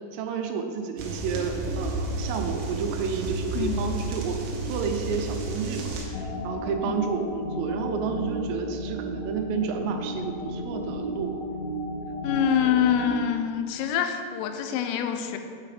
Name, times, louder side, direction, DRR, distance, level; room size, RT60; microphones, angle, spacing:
voice 1, 0.1-11.4, right 6 dB, 90° right, 4 dB, 3.4 m, -31 dB
sound 1, 1.0-6.1, right 2 dB, 75° right, 2.3 m, -31 dB
voice 2, 3.6-3.9 6.8-7.0 12.2-15.4, left 9 dB, 85° left, 7 dB, 3.2 m, -25 dB
sound 2, 6.1-13.0, equal, 65° left, 2.3 m, -33 dB
9.3 x 4.9 x 4.9 m, 2.3 s
omnidirectional pair, 5.8 m